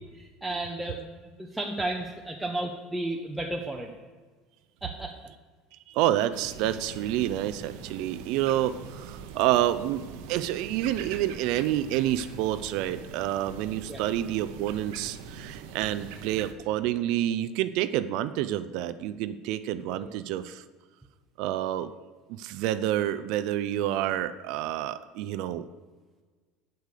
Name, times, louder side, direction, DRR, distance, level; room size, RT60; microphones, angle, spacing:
voice 1, 0.1-1.1 1.4-3.9 4.8-5.2 13.9-14.0 19.9-20.1, right 1 dB, 5° right, 0 dB, 0.7 m, -33 dB
voice 2, 5.9-20.6 21.4-21.9 22.3-25.7, right 12 dB, 60° right, 12 dB, 0.4 m, -28 dB
sound 1, 6.3-16.5, right 6 dB, 80° right, 1.0 m, -42 dB
8.3 x 8.0 x 6.7 m, 1.4 s
cardioid pair, 160°, 0 cm